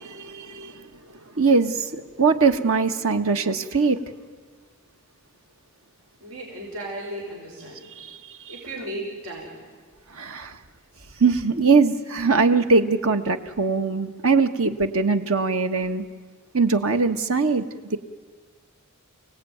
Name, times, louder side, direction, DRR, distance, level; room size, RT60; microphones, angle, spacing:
voice 1, 0.2-0.9 1.4-4.0 8.0-8.4 10.1-10.6 11.2-16.0 16.5-17.6 17.9-18.0, right 4 dB, 70° right, 8 dB, 1.4 m, -21 dB
voice 2, 6.2-7.9 8.5-9.6, right 1 dB, 90° right, -1 dB, 5.5 m, -35 dB
30.0 x 18.5 x 9.4 m, 1.5 s
head